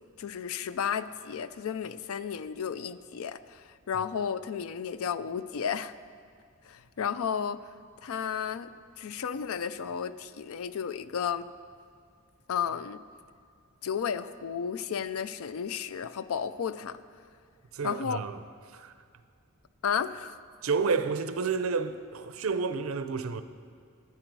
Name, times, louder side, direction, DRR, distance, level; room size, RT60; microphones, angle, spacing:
voice 1, 0.2-5.9 6.6-7.6 8.0-11.5 12.5-13.0 13.8-17.0 17.8-18.2 19.8-20.4, left 7 dB, 80° left, 0.4 m, -33 dB
voice 2, 17.7-18.4 18.7-18.9 20.6-23.4, right 5 dB, 75° right, 0.6 m, -30 dB
11.5 x 9.8 x 4.7 m
head